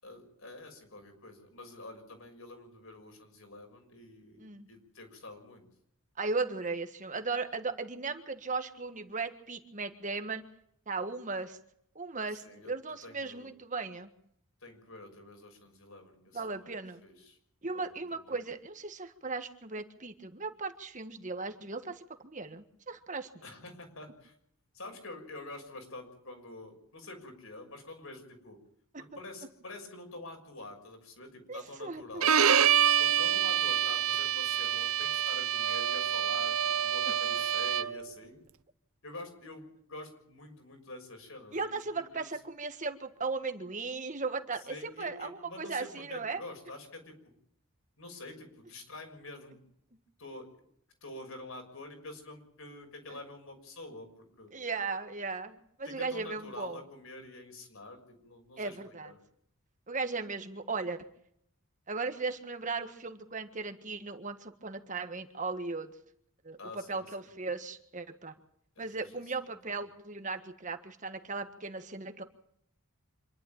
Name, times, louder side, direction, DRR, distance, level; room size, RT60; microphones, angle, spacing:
voice 1, 0.0-5.6 12.3-12.7 13.0-13.5 14.6-17.4 17.7-18.0 18.3-18.4 23.4-24.4 24.7-28.6 29.0-32.4 33.0-38.4 39.0-42.3 44.6-47.1 48.0-49.6 50.2-50.5 51.0-54.1 54.4-54.5 55.8-59.2 66.6-67.3 68.8-69.0 69.7-69.8, left 2 dB, 70° left, 4 dB, 6.4 m, -47 dB
voice 2, 6.2-10.4 10.9-11.6 12.0-14.1 16.3-17.0 17.6-23.3 31.5-32.3 41.5-46.4 53.1-53.2 54.5-56.8 58.6-59.1 59.9-61.1 61.9-65.9 66.4-68.3 68.8-72.2, right 4 dB, 35° right, 7 dB, 1.6 m, -37 dB
Bowed string instrument, 32.2-38.0, right 9 dB, 75° right, 0.8 m, -27 dB
26.5 x 12.0 x 8.9 m, 0.71 s
head